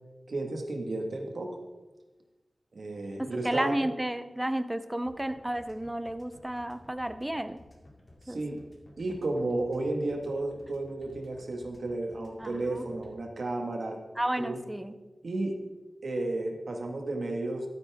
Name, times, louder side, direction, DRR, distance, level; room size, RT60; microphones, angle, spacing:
voice 1, 0.3-1.6 2.7-3.7 8.2-8.6 9.0-14.0 14.4-14.6 15.2-15.6 16.0-17.7, right 2 dB, 75° right, 3 dB, 1.6 m, -33 dB
voice 2, 3.2-7.6 8.3-8.6 12.4-12.9 14.2-14.9, right 1 dB, 15° right, 11 dB, 0.6 m, -32 dB
sound 1, 5.0-13.1, left 1 dB, 40° left, 2.3 m, -54 dB
13.0 x 9.8 x 3.5 m, 1.2 s
wide cardioid pair, 95°, 0 cm